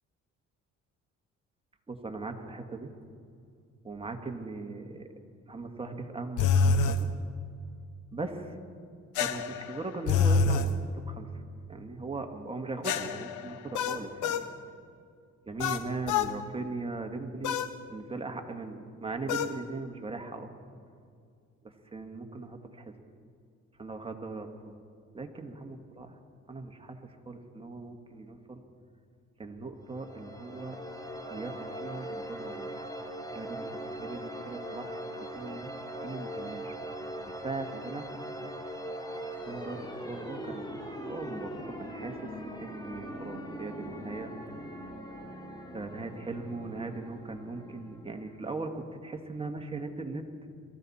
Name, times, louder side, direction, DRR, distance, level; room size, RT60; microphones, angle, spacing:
voice 1, 1.9-2.9 3.8-5.1 5.5-7.1 8.1-8.6 9.2-11.3 11.7-14.4 15.4-17.6 17.9-20.5 21.6-23.0 23.8-24.7 25.1-26.1 26.5-28.6 29.4-30.8 31.3-32.7 33.3-33.6 34.0-35.7 36.0-36.7 37.3-38.1 39.4-42.3 42.6-44.3 45.7-50.3, right 3 dB, 20° right, 4 dB, 1.6 m, -39 dB
sound 1, 6.4-7.0 9.2-10.7 12.8-14.5 15.6-16.3 17.4-17.7 19.3-19.6, left 5 dB, 80° left, 0.8 m, -27 dB
sound 2, 29.8-48.5, equal, 15° left, 2.0 m, -41 dB
22.0 x 14.5 x 4.2 m, 2.3 s
cardioid pair, 90°, 30 cm